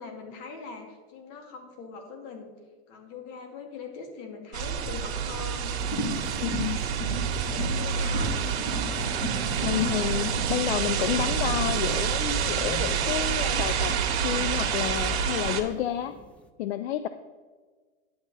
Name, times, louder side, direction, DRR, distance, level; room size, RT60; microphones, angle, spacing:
voice 1, 0.0-2.6 2.9-5.8 7.3-8.4, left 5 dB, 45° left, 4 dB, 2.4 m, -42 dB
sound 1, 4.5-15.6, right 7 dB, 65° right, 1.8 m, -28 dB
sound 2, 5.7-10.6, left 1 dB, 20° left, 2.5 m, -36 dB
voice 2, 6.4-6.8 9.6-16.1 16.6-17.1, left 11 dB, 70° left, 12 dB, 0.6 m, -30 dB
sound 3, 11.0-16.5, left 1 dB, 5° left, 0.4 m, -45 dB
11.0 x 8.6 x 4.0 m, 1.4 s
supercardioid pair, 135°, 33 cm